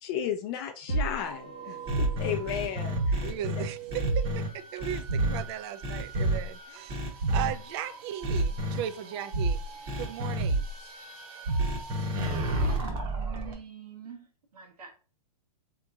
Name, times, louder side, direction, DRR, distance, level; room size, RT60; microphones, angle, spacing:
voice 1, 0.0-3.3, left 9 dB, 40° left, 0.4 m, -34 dB
sound 1, 0.9-12.8, right 3 dB, 65° right, 1.5 m, -32 dB
sound 2, 1.9-4.5 4.8-5.4 5.8-6.4 6.9-7.5 8.2-8.8 9.9-10.4 11.6-13.5, left 1 dB, 25° right, 0.8 m, -32 dB
voice 2, 3.2-9.6 10.0-10.9, right 11 dB, 45° right, 0.4 m, -37 dB
voice 3, 12.6-14.3 14.5-14.9, right 5 dB, 85° right, 1.1 m, -44 dB
3.6 x 2.9 x 2.4 m
hypercardioid pair, 130°, 19 cm